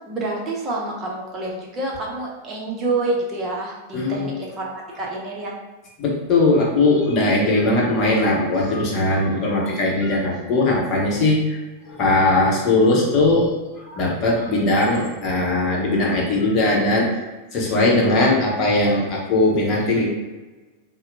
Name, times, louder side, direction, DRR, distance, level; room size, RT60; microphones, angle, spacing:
voice 1, 0.1-5.6, right 2 dB, 30° right, -2 dB, 0.6 m, -27 dB
voice 2, 3.9-4.4 6.0-11.4 11.9-13.5 13.9-17.1 17.5-20.1, left 2 dB, 35° left, -2 dB, 0.8 m, -19 dB
4.2 x 2.0 x 2.5 m, 1.2 s
figure-of-eight pair, 90°, 0 cm